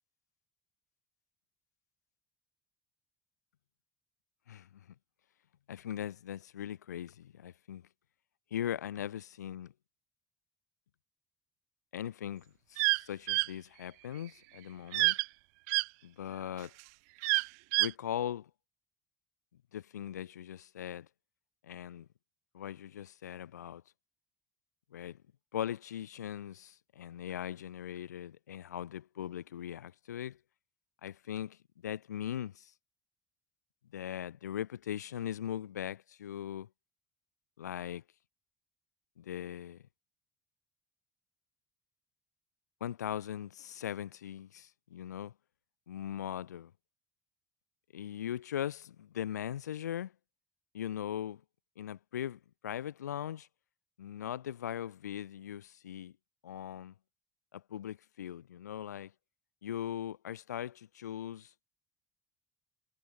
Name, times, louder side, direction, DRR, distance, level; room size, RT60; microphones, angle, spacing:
voice 1, 5.7-7.8 8.5-9.7 11.9-15.2 16.0-16.7 17.8-18.5 19.7-21.1 21.6-22.1 22.5-23.8 24.9-25.2 25.5-30.4 31.0-31.6 31.8-32.7 33.9-36.7 37.6-38.0 39.2-39.8 42.8-45.3 45.9-46.7 47.9-50.1 50.7-51.4 51.8-53.5 54.0-56.1 56.4-56.9 57.5-59.1 59.6-61.5, left 10 dB, 80° left, 2.2 m, -40 dB
sound 1, 12.8-13.0 13.3-13.5 14.9-15.3 15.7-15.8 17.2-17.9, right 32 dB, 70° right, 0.5 m, -27 dB
figure-of-eight pair, 55°, 9 cm